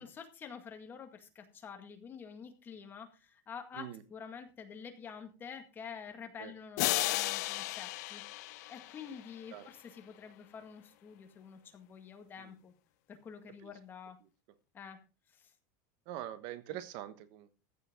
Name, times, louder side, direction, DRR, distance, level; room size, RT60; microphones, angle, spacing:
voice 1, 0.0-12.7 13.1-14.2 14.7-15.0 15.3-15.5, left 6 dB, 20° left, 6 dB, 1.9 m, -48 dB
sound 1, 6.8-9.4, left 18 dB, 60° left, 0.8 m, -34 dB
voice 2, 16.1-17.5, right 12 dB, 45° right, 13 dB, 1.2 m, -44 dB
15.0 x 10.0 x 3.8 m, 0.30 s
supercardioid pair, 160°, 10 cm